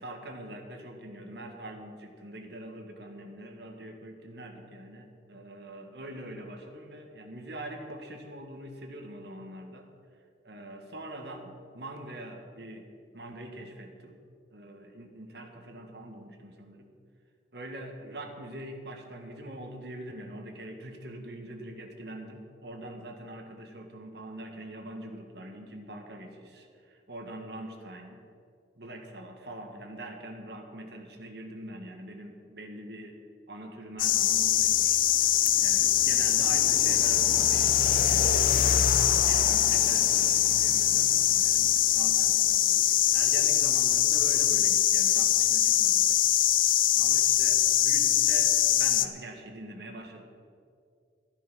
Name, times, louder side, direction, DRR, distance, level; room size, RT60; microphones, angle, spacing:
voice 1, 0.0-9.9 10.4-14.2 14.5-16.9 17.5-28.2 28.8-33.2 33.5-46.2 47.0-50.2, right 1 dB, 65° right, 4 dB, 1.7 m, -43 dB
sound 1, 34.0-49.1, left 11 dB, 50° left, 0.6 m, -23 dB
14.0 x 10.0 x 6.2 m, 2.3 s
head